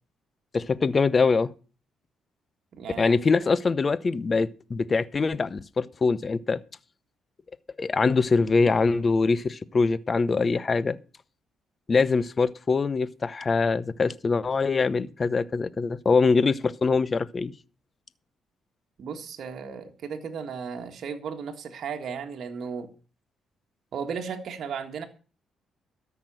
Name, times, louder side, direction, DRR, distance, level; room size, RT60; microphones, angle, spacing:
voice 1, 0.5-1.5 3.0-6.6 7.8-11.0 11.9-17.5, left 4 dB, 35° left, 0.8 m, -23 dB
voice 2, 2.7-3.2 19.0-22.9 23.9-25.1, right 6 dB, 65° right, 1.6 m, -35 dB
13.5 x 6.0 x 7.6 m
cardioid pair, 90°, 0 cm